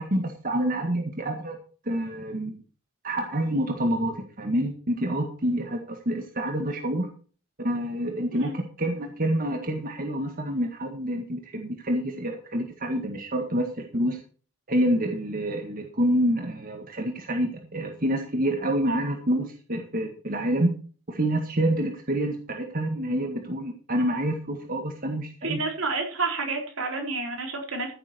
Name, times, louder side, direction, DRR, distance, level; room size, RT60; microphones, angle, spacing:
voice 1, 0.0-1.6 1.9-2.5 3.0-7.1 7.6-13.7 13.9-14.2 14.7-20.7 21.1-25.6, right 1 dB, 45° right, 3 dB, 1.8 m, -27 dB
voice 2, 25.4-27.9, right 3 dB, 80° right, 2 dB, 4.5 m, -29 dB
15.0 x 8.0 x 4.5 m, 0.40 s
head